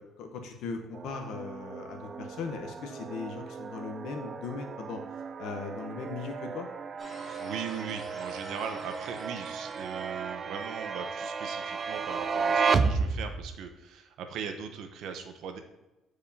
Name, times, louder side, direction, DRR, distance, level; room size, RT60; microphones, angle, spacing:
voice 1, 0.0-5.0 5.4-6.7, left 5 dB, 70° left, 4 dB, 0.9 m, -38 dB
sound 1, 0.9-13.6, right 5 dB, 30° right, 0.3 m, -33 dB
sound 2, 7.0-11.1, right 1 dB, 15° right, 2.1 m, -50 dB
voice 2, 7.4-15.6, right 7 dB, 65° right, 6 dB, 0.7 m, -39 dB
9.2 x 4.8 x 2.8 m, 1.0 s
cardioid pair, 155°, 0 cm